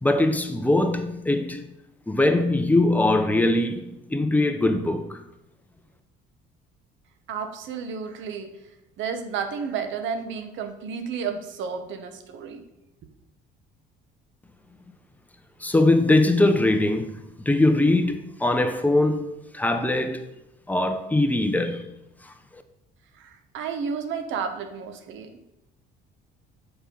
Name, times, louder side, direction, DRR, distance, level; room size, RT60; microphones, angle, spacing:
voice 1, 0.0-1.6 2.1-5.2 15.6-17.1 17.5-20.2 20.7-21.9 22.2-22.6, left 2 dB, 10° left, 0.8 m, -22 dB
voice 2, 7.3-8.5 9.0-12.6 23.2-25.5, right 6 dB, 70° right, 1.1 m, -32 dB
6.9 x 4.5 x 5.4 m
supercardioid pair, 85°, 21 cm